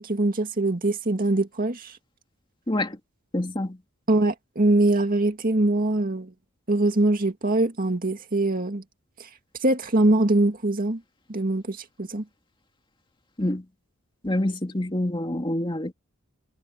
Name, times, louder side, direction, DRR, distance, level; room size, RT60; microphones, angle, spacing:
voice 1, 0.0-2.0 4.1-6.3 6.7-8.8 9.6-11.0 11.3-12.2, right 2 dB, 40° right, 2.2 m, -23 dB
voice 2, 2.7-3.0 3.3-3.8 13.4-13.6 14.2-15.9, left 1 dB, 20° left, 2.4 m, -26 dB
head